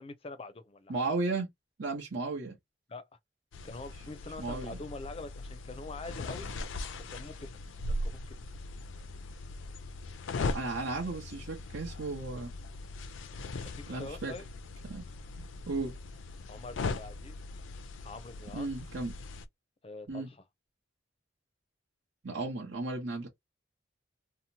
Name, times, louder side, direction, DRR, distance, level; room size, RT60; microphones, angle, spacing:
voice 1, 0.0-1.0 2.9-3.0 3.6-6.5 7.0-7.5 7.9-8.4 13.6-14.4 16.5-17.4 18.0-18.7 19.8-20.4, left 3 dB, 30° left, 0.4 m, -44 dB
voice 2, 0.9-1.5 1.8-2.6 4.4-4.8 10.4-12.5 13.9-14.3 14.9-15.0 15.4-15.9 18.5-19.1 20.1-20.3 22.2-23.3, right 3 dB, 80° right, 0.9 m, -35 dB
sound 1, 3.5-19.5, left 2 dB, 90° left, 0.4 m, -40 dB
2.8 x 2.0 x 2.7 m
head